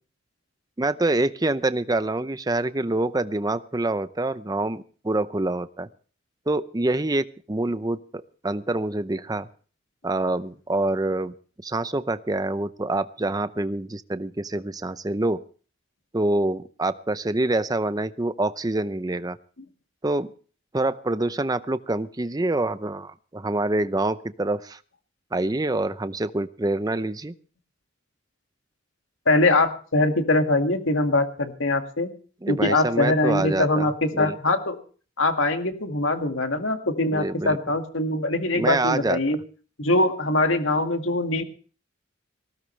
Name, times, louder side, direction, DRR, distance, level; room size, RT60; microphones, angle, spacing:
voice 1, 0.8-5.9 6.5-9.5 10.0-11.3 11.6-15.4 16.1-19.4 20.0-20.3 20.7-24.8 25.3-27.3 32.4-33.9 34.1-34.4 37.1-37.6 38.6-39.2, right 2 dB, 20° right, 13 dB, 0.6 m, -26 dB
voice 2, 29.3-32.1 32.5-34.8 35.2-39.4 39.8-41.4, left 2 dB, 90° left, 6 dB, 2.0 m, -22 dB
19.0 x 16.0 x 3.2 m, 0.40 s
head